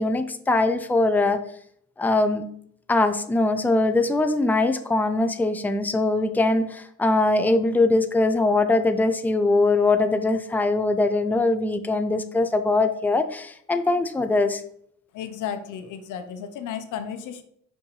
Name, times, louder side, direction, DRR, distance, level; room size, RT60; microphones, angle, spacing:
voice 1, 0.0-1.4 2.0-2.5 2.9-14.6, left 2 dB, 5° left, 8 dB, 0.5 m, -22 dB
voice 2, 15.1-17.4, left 8 dB, 85° left, 9 dB, 0.8 m, -33 dB
5.6 x 5.4 x 3.2 m, 0.67 s
cardioid pair, 90°, 30 cm